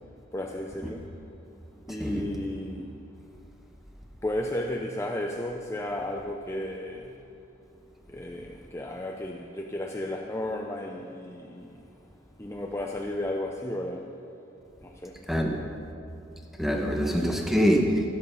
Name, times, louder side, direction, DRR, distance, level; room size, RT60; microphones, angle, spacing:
voice 1, 0.3-1.0 1.9-2.9 4.2-7.2 8.1-11.8 12.4-14.1 14.8-15.2, left 1 dB, 15° left, 1 dB, 0.6 m, -33 dB
voice 2, 16.6-18.1, equal, ahead, 1 dB, 1.3 m, -24 dB
13.5 x 13.0 x 5.7 m, 2.7 s
head